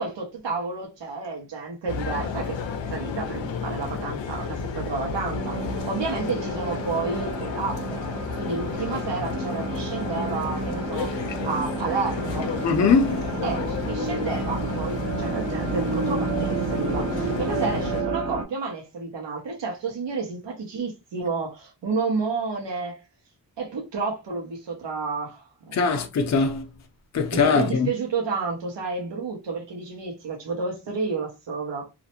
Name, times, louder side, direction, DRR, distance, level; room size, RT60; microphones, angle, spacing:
voice 1, 0.0-2.6 2.9-8.0 8.3-11.1 11.4-12.5 13.4-23.0 23.6-26.0 27.3-31.9, right 4 dB, 75° right, 0.9 m, -31 dB
sound 1, 1.9-18.0, left 5 dB, 90° left, 0.6 m, -32 dB
sound 2, 5.3-18.4, right 5 dB, 35° right, 0.6 m, -31 dB
voice 2, 12.6-13.2 25.7-26.6 27.1-27.9, left 5 dB, 40° left, 0.5 m, -21 dB
2.4 x 2.0 x 2.8 m
wide cardioid pair, 75°, 43 cm